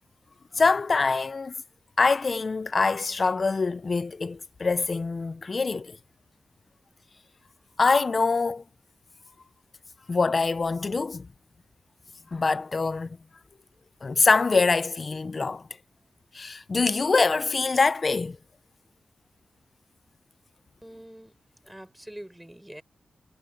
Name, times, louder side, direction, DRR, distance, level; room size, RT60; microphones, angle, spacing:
voice 1, 0.5-1.5 2.0-6.0 7.8-8.6 10.1-11.3 12.3-13.2 14.0-15.7 16.3-18.4, left 4 dB, 35° left, 0.5 m, -24 dB
voice 2, 20.8-21.3 21.6-22.8, right 1 dB, 5° right, 6.9 m, -44 dB
wide cardioid pair, 150°, 0 cm